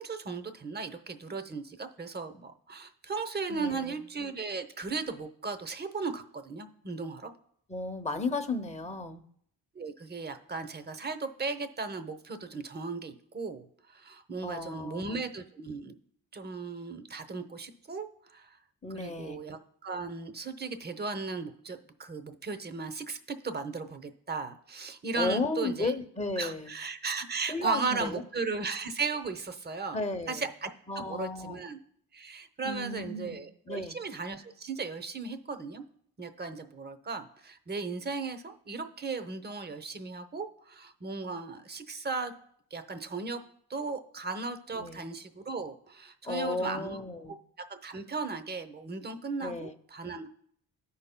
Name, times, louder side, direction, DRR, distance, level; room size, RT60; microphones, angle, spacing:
voice 1, 0.0-7.3 9.7-15.9 16.3-18.1 18.3-18.6 18.9-23.2 23.4-25.9 26.4-30.0 30.3-31.8 32.1-35.8 36.2-42.3 42.7-43.4 43.7-47.0 47.7-50.3, right 4 dB, 25° right, 9 dB, 0.8 m, -36 dB
voice 2, 3.5-3.9 7.7-9.2 14.4-15.2 18.8-19.4 25.1-26.7 27.5-28.2 29.9-30.5 30.9-31.6 32.6-33.4 33.7-34.0 44.7-45.0 46.2-47.3 49.4-49.7, left 3 dB, 20° left, 6 dB, 0.8 m, -34 dB
14.0 x 5.6 x 2.2 m, 0.68 s
cardioid pair, 65°, 37 cm